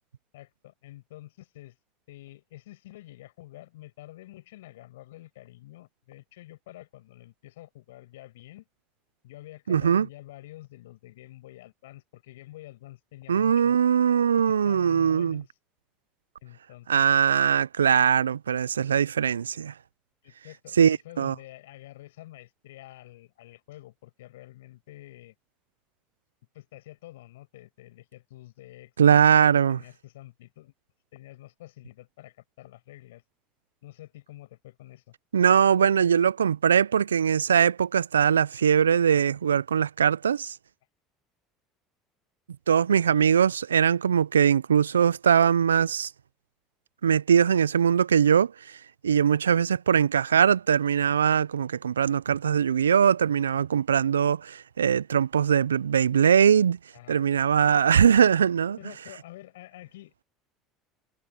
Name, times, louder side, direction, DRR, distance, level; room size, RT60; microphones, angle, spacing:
voice 1, 0.3-1.8 2.1-8.7 9.2-13.8 14.4-15.5 16.4-17.2 20.2-25.3 26.5-30.7 31.1-33.2 33.8-35.1 56.9-57.2 58.8-60.3, left 16 dB, 75° left, 7.8 m, -48 dB
voice 2, 9.7-10.1 13.3-15.4 16.9-19.7 20.8-21.3 29.0-29.8 35.3-40.5 42.7-46.1 47.0-48.5 49.0-56.8 57.1-58.8, right 8 dB, 90° right, 0.4 m, -21 dB
hypercardioid pair, 75°, 0 cm